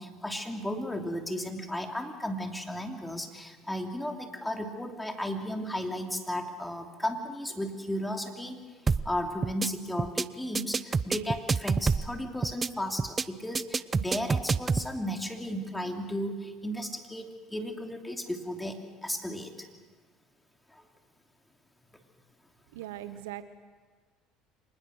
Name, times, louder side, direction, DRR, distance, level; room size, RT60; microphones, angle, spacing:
voice 1, 0.0-8.6 9.0-19.7 20.7-20.8, left 1 dB, 10° left, 3 dB, 3.0 m, -34 dB
sound 1, 8.9-9.1 9.4-9.7 10.0-10.2 10.5-12.1 12.4-12.7 13.0-13.2 13.5-14.9, right 4 dB, 25° right, 0.6 m, -27 dB
voice 2, 22.7-23.4, right 13 dB, 85° right, 12 dB, 1.0 m, -39 dB
25.0 x 20.0 x 6.4 m, 1.5 s
hypercardioid pair, 75°, 0 cm